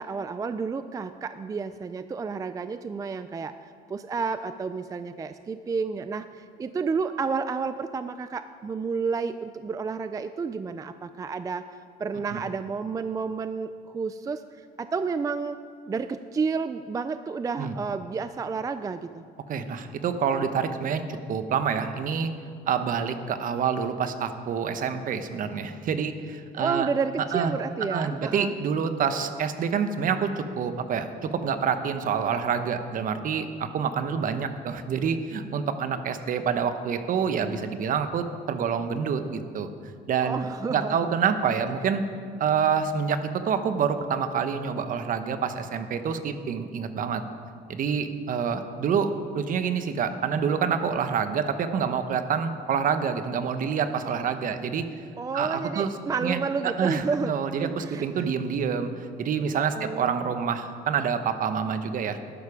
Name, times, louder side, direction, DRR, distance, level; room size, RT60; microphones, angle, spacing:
voice 1, 0.0-15.6 15.9-19.3 26.6-28.5 40.2-41.1 55.2-57.3 57.6-58.3 59.8-60.4, right 5 dB, 20° right, 11 dB, 0.3 m, -31 dB
voice 2, 19.5-22.3 22.7-26.9 27.3-27.5 27.9-39.7 40.1-42.0 42.4-47.2 47.7-49.1 49.3-54.8 55.3-55.9 56.2-56.4 56.8-58.9 59.2-62.2, right 6 dB, 55° right, 9 dB, 0.9 m, -27 dB
12.5 x 11.5 x 4.9 m, 2.2 s
cardioid pair, 110°, 17 cm